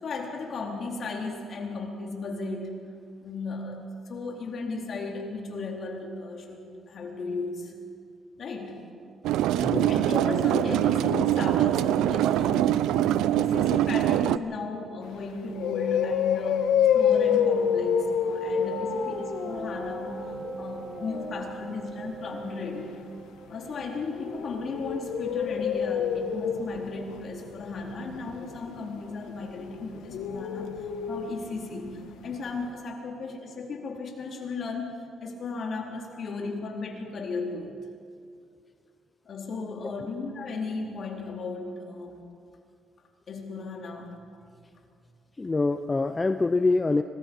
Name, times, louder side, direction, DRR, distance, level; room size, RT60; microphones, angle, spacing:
voice 1, 0.0-2.7 3.2-7.7 8.4-8.8 9.9-20.3 20.6-23.0 23.5-34.9 35.2-37.8 39.3-42.2 43.3-44.1, left 3 dB, 55° left, 0 dB, 4.1 m, -35 dB
sound 1, 9.2-14.4, right 13 dB, 90° right, 0.5 m, -23 dB
voice 2, 9.6-9.9 39.8-40.1 45.4-47.0, left 3 dB, 25° left, 9 dB, 0.7 m, -25 dB
sound 2, 15.1-15.2 15.5-21.4 23.6-31.6 31.9-32.0 32.3-32.4, left 8 dB, 90° left, 1.4 m, -28 dB
Wind instrument woodwind instrument, 18.6-25.2, right 4 dB, 35° right, 1.5 m, -41 dB
25.5 x 20.0 x 5.5 m, 2.3 s
cardioid pair, 90°, 0 cm